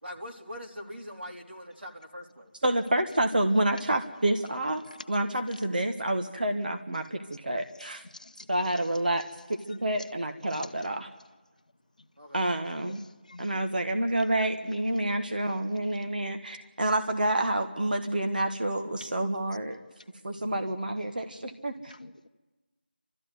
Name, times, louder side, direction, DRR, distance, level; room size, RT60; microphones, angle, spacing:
voice 1, 0.0-2.6 12.2-12.5, equal, 85° right, 3.7 m, -42 dB
voice 2, 2.6-8.0 8.5-11.1 12.3-13.0 13.4-19.8 20.2-21.9, right 1 dB, 50° right, 1.5 m, -28 dB
voice 3, 7.8-8.5 10.0-10.1 10.5-10.7 12.8-13.5 16.1-16.2 19.0-19.1 20.3-20.5 21.9-22.3, left 2 dB, 45° left, 0.8 m, -48 dB
28.0 x 13.5 x 9.5 m
figure-of-eight pair, 175°, 6 cm